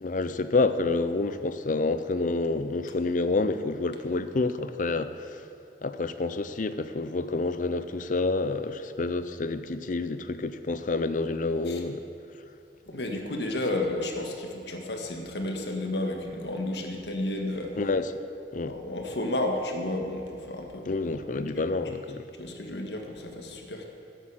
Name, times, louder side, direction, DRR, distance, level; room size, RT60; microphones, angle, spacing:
voice 1, 0.0-5.4 5.8-12.0 17.8-18.1 18.5-18.8 20.9-22.2, left 3 dB, 45° left, 12 dB, 0.5 m, -28 dB
voice 2, 12.9-17.8 18.6-21.6 22.4-23.9, left 1 dB, 70° left, 3 dB, 1.6 m, -32 dB
12.5 x 8.1 x 7.5 m, 2.5 s
head